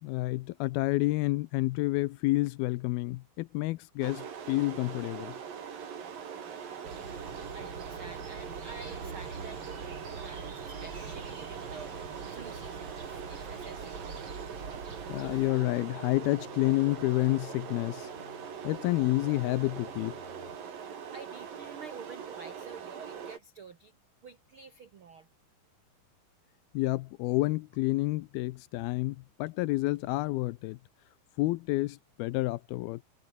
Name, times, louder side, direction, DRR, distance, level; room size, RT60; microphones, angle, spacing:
voice 1, 0.0-5.4 15.1-18.1 18.6-20.1 26.7-30.8 31.4-33.0, left 19 dB, 80° left, 2.4 m, -29 dB
sound 1, 4.0-23.4, right 7 dB, 60° right, 4.7 m, -42 dB
voice 2, 6.3-12.0 12.2-14.0 20.7-23.9 24.2-25.3, right 5 dB, 80° right, 1.1 m, -50 dB
sound 2, 6.8-15.5, right 4 dB, 30° right, 4.7 m, -44 dB
sound 3, 15.5-20.6, left 4 dB, 30° left, 1.2 m, -52 dB
omnidirectional pair, 4.6 m